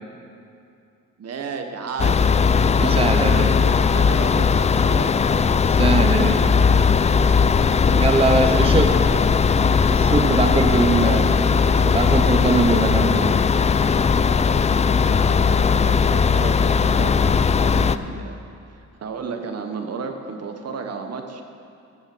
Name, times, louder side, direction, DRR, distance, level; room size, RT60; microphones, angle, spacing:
voice 1, 1.2-5.5 8.4-9.4 15.7-18.4 18.7-21.4, right 5 dB, 55° right, 5 dB, 1.3 m, -34 dB
sound 1, 2.0-18.0, left 5 dB, 25° left, 0.4 m, -18 dB
voice 2, 2.8-3.5 5.7-6.4 8.0-8.9 9.9-11.5 11.8-13.4, right 3 dB, 20° right, 5 dB, 0.8 m, -22 dB
12.0 x 7.1 x 7.8 m, 2.5 s
cardioid pair, 90°, 30 cm